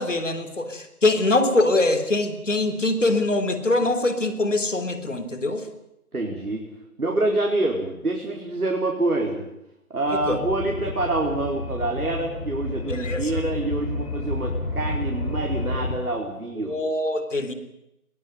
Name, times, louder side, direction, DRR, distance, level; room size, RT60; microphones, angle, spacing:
voice 1, 0.0-5.7 10.1-10.4 12.9-13.4 16.6-17.5, left 2 dB, 55° left, 9 dB, 3.6 m, -23 dB
voice 2, 6.1-6.6 7.0-9.5 9.9-16.8, right 2 dB, 70° right, 1 dB, 4.6 m, -26 dB
sound 1, 10.1-16.0, left 2 dB, 90° left, 5.4 m, -30 dB
21.5 x 17.5 x 9.4 m, 0.83 s
figure-of-eight pair, 175°, 45 cm